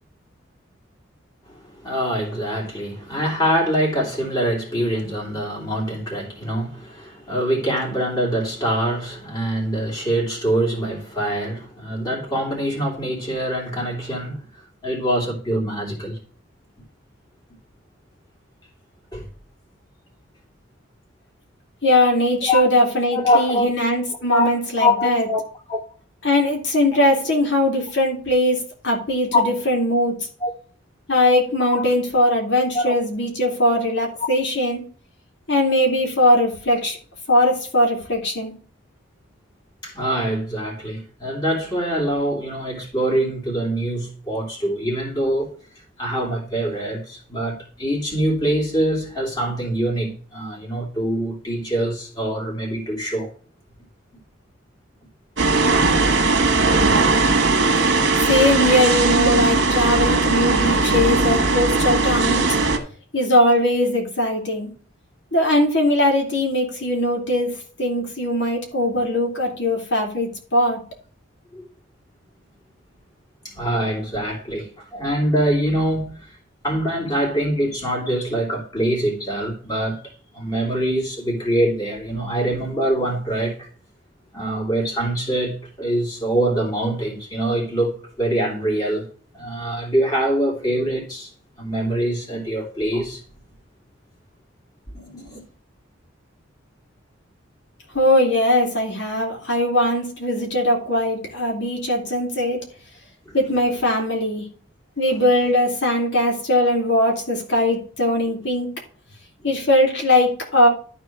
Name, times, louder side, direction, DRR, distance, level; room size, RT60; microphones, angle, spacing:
voice 1, 1.8-14.4 14.8-16.2 19.1-19.3 22.4-22.7 23.1-23.7 24.3-25.8 29.3-29.4 30.4-30.5 31.7-31.9 32.7-32.9 39.8-45.5 46.0-53.3 71.5-71.6 73.4-76.4 76.6-80.0 80.3-83.7 84.3-89.1 89.3-91.3 91.6-93.2 94.9-95.4 103.3-103.4, equal, 20° left, 3.2 m, -24 dB
voice 2, 21.8-25.3 26.2-30.3 31.1-34.8 35.5-37.0 37.3-38.5 58.3-62.5 63.1-64.7 65.3-67.5 67.8-70.8 97.9-102.6 103.3-104.5 105.0-108.7 109.4-110.7, left 1 dB, 60° left, 2.8 m, -20 dB
sound 1, 55.4-62.8, right 3 dB, 65° right, 1.9 m, -18 dB
12.5 x 4.3 x 4.6 m
head